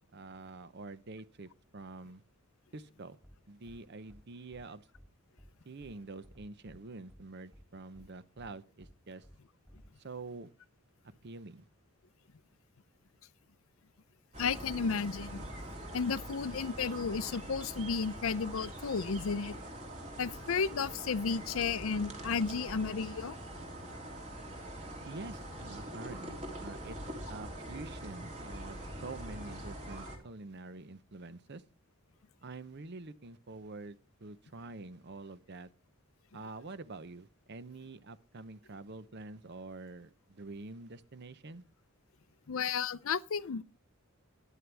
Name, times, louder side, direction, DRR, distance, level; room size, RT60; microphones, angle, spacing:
voice 1, 0.1-2.2 2.7-3.2 3.5-4.9 5.6-9.3 10.0-10.5 11.2-11.7 25.1-31.6 32.4-35.7 36.3-41.6, right 3 dB, 50° right, 0.7 m, -47 dB
sound 1, 3.2-3.4 3.6-3.8 4.1-4.2 4.5-4.6 4.9-5.1 5.4-5.5 5.8-5.9 6.2-6.8 7.1-7.2 7.5-7.6 7.9-8.1 8.4-8.5 8.8-8.9 9.2-9.4 9.6-9.9, equal, ahead, 2.3 m, -56 dB
sound 2, 14.3-30.2, right 1 dB, 30° right, 2.9 m, -44 dB
voice 2, 14.4-15.4 15.9-19.6 20.2-23.4 42.5-43.6, left 5 dB, 65° left, 0.5 m, -33 dB
14.0 x 11.0 x 3.4 m
head